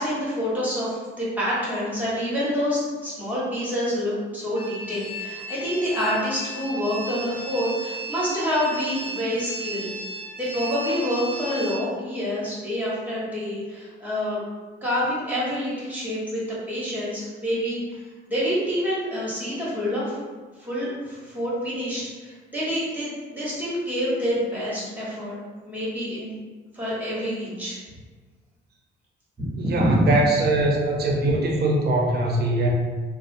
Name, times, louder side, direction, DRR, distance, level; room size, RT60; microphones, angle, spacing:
voice 1, 0.0-9.9 10.4-14.4 14.8-18.0 18.3-20.1 20.6-25.4 25.6-26.3 26.7-27.8 29.4-30.1, equal, 10° right, -7 dB, 1.1 m, -27 dB
sound 1, 4.5-11.8, right 1 dB, 30° left, 0.9 m, -35 dB
voice 2, 29.6-32.7, right 2 dB, 55° right, -1 dB, 0.6 m, -22 dB
2.7 x 2.0 x 2.6 m, 1.4 s
cardioid pair, 90°, 20 cm